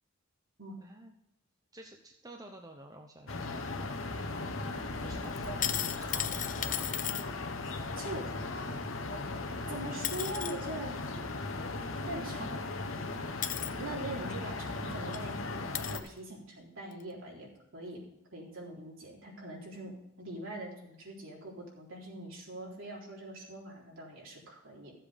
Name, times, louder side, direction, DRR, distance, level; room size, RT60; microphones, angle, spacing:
voice 1, 0.8-1.1 1.7-3.6 4.9-5.7 6.0-7.0, right 1 dB, 15° right, 3 dB, 0.8 m, -51 dB
sound 1, 3.3-16.0, left 3 dB, 65° left, 1.1 m, -37 dB
sound 2, 5.4-7.2 9.5-9.6 10.0-10.5 12.4-12.5 13.4-13.7 14.7-14.8 15.1-15.2 15.7-16.1 16.9-17.0, left 11 dB, 40° left, 0.6 m, -35 dB
voice 2, 8.0-8.3 9.7-11.0 12.1-12.8 13.8-18.0 18.3-24.9, right 1 dB, 65° right, -3 dB, 3.8 m, -42 dB
14.0 x 7.5 x 5.1 m, 0.84 s
head